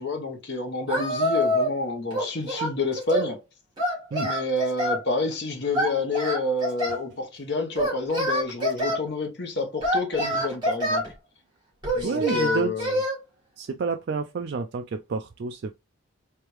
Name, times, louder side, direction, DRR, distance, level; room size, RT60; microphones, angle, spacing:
voice 1, 0.0-3.4 4.2-11.0 11.9-13.0, left 3 dB, 55° left, 1.1 m, -28 dB
Singing, 0.9-1.8 2.1-3.3 3.8-5.0 5.7-7.0 7.7-9.0 9.8-11.1 11.8-13.2, equal, 20° right, 1.8 m, -26 dB
voice 2, 12.0-12.9 13.6-15.7, right 4 dB, 55° right, 0.3 m, -30 dB
3.4 x 3.3 x 3.1 m
head